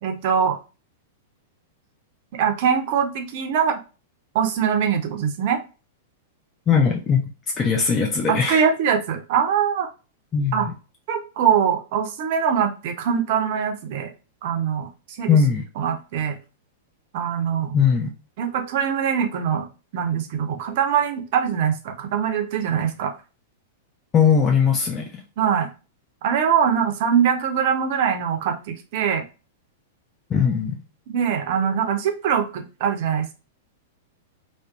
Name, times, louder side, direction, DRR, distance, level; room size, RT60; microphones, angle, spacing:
voice 1, 0.0-0.6 2.3-3.8 4.3-5.6 8.3-9.9 10.5-10.7 11.1-14.1 14.4-14.9 15.2-15.4 15.8-16.4 17.1-17.8 18.4-19.7 19.9-23.1 25.4-25.7 26.2-29.2 31.1-33.3, right 7 dB, 55° right, 5 dB, 0.6 m, -22 dB
voice 2, 6.7-7.2 7.6-8.6 10.3-10.7 15.3-15.6 17.7-18.1 24.1-25.2 30.3-30.8, left 6 dB, 25° left, 0 dB, 0.4 m, -19 dB
2.6 x 2.1 x 2.3 m, 0.31 s
hypercardioid pair, 105°, 0 cm